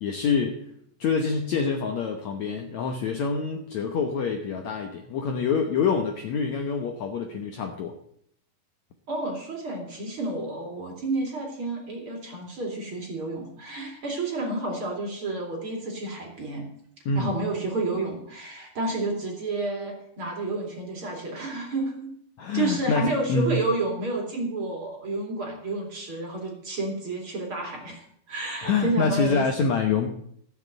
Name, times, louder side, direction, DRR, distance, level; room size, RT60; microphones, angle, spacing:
voice 1, 0.0-0.7 1.0-8.0 17.1-17.3 22.4-23.6 28.6-30.1, left 5 dB, 65° left, 3 dB, 1.9 m, -26 dB
voice 2, 9.1-16.7 17.1-22.1 22.5-29.4, right 2 dB, 35° right, 0 dB, 3.2 m, -30 dB
14.5 x 7.3 x 8.0 m, 0.67 s
omnidirectional pair, 4.4 m